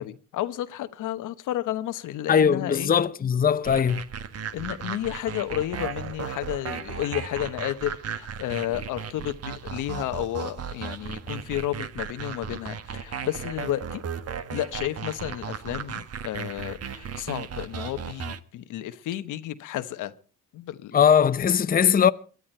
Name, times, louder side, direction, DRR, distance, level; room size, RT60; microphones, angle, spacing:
voice 1, 0.0-2.9 4.5-14.0 14.5-20.1 20.5-21.0, left 13 dB, 85° left, 1.1 m, -32 dB
voice 2, 2.3-4.0 20.9-22.1, left 8 dB, 30° left, 0.7 m, -20 dB
sound 1, 3.6-18.4, right 7 dB, 55° right, 1.3 m, -36 dB
22.5 x 11.0 x 4.4 m
cardioid pair, 90°, 30 cm